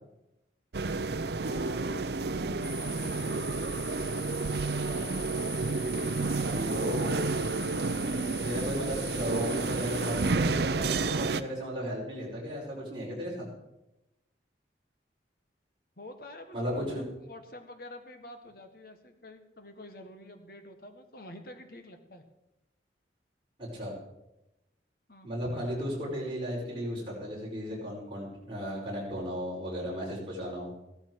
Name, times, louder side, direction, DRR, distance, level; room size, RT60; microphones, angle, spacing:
sound 1, 0.7-11.4, right 3 dB, 65° right, 0.6 m, -30 dB
voice 1, 1.4-3.2 16.0-22.2 25.1-25.3, left 1 dB, 55° left, 6 dB, 1.6 m, -48 dB
sound 2, 2.6-10.3, equal, 15° left, 4.1 m, -42 dB
voice 2, 4.6-5.0 6.4-7.3 8.4-13.5 16.5-17.0 23.6-23.9 25.2-30.7, equal, 30° right, -5 dB, 5.4 m, -35 dB
15.0 x 13.0 x 4.8 m, 0.92 s
head